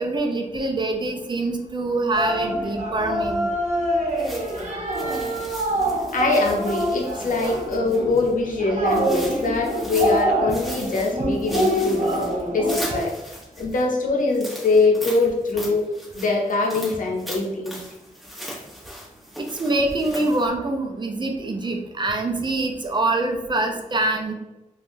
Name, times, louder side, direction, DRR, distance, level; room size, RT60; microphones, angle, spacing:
voice 1, 0.0-3.5 19.4-24.3, right 2 dB, 35° right, 3 dB, 0.4 m, -25 dB
sound 1, 2.1-13.0, right 1 dB, 60° right, 0.8 m, -25 dB
sound 2, 4.2-8.3 8.9-10.2 10.5-13.8 14.3-20.5, equal, ahead, 1.0 m, -38 dB
voice 2, 6.1-12.2 12.5-13.2 13.6-15.8 16.1-17.7, left 3 dB, 80° left, 0 dB, 0.7 m, -23 dB
3.4 x 2.2 x 2.6 m, 1.0 s
wide cardioid pair, 115°, 14 cm